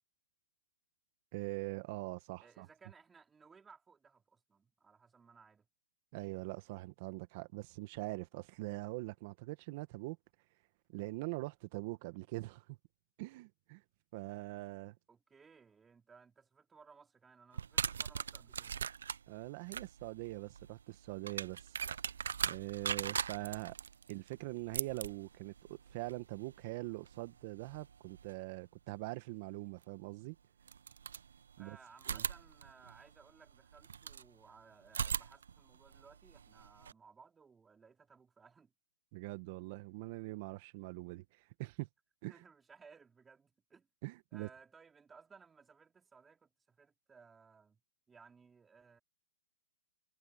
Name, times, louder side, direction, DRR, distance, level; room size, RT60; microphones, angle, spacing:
voice 1, 1.3-2.7 6.1-10.2 10.9-12.8 13.2-13.8 14.1-15.0 19.3-21.8 22.5-23.8 24.1-30.4 31.6-31.8 32.1-32.2 39.1-41.9 42.2-42.3 44.0-44.5, right 22 dB, 45° right, 1.8 m, -43 dB
voice 2, 2.4-5.7 15.1-18.8 31.6-38.7 42.3-43.9 44.3-47.8 48.1-49.0, right 5 dB, 10° right, 4.0 m, -61 dB
sound 1, 17.5-28.3 29.8-29.9 30.6-31.6 32.0-34.3 34.9-36.9, right 7 dB, 80° right, 0.3 m, -41 dB
hypercardioid pair, 140°, 0 cm